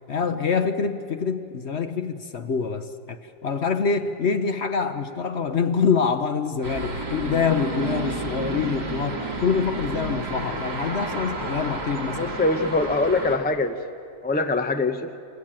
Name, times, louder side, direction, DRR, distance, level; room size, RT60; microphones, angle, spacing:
voice 1, 0.1-12.4, left 5 dB, 50° left, 9 dB, 1.0 m, -25 dB
sound 1, 6.6-13.4, right 2 dB, 85° right, 3.4 m, -31 dB
voice 2, 12.2-13.8 14.2-15.1, left 3 dB, 10° left, 7 dB, 0.4 m, -23 dB
28.0 x 17.0 x 8.9 m, 2.5 s
omnidirectional pair, 1.7 m